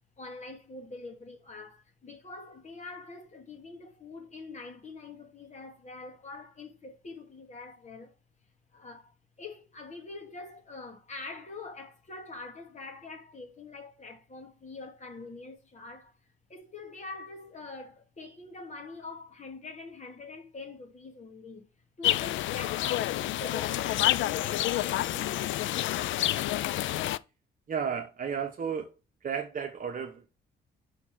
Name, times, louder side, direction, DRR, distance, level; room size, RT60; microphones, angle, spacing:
voice 1, 0.2-8.2 8.7-16.1 16.5-21.7 22.0-25.5, left 3 dB, 35° left, 2.3 m, -44 dB
sound 1, 22.0-27.2, left 14 dB, 75° left, 0.4 m, -28 dB
voice 2, 27.7-28.9 29.2-30.3, right 7 dB, 45° right, 1.0 m, -33 dB
6.4 x 4.2 x 6.1 m
cardioid pair, 90°, 20 cm